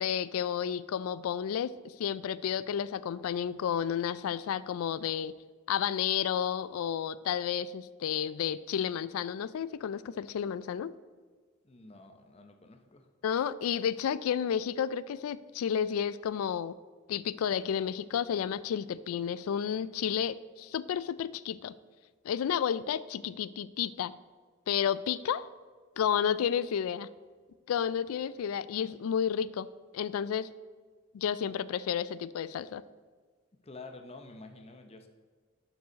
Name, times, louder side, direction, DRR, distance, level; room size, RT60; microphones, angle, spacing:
voice 1, 0.0-5.3 5.7-10.9 13.2-16.8 17.1-21.7 22.2-24.1 24.7-25.5 26.0-27.1 27.7-29.7 29.9-30.5 31.1-32.8, left 8 dB, 90° left, 17 dB, 0.3 m, -31 dB
voice 2, 11.6-13.1 33.6-35.1, left 3 dB, 30° left, 6 dB, 0.7 m, -49 dB
11.5 x 4.7 x 4.0 m, 1.5 s
head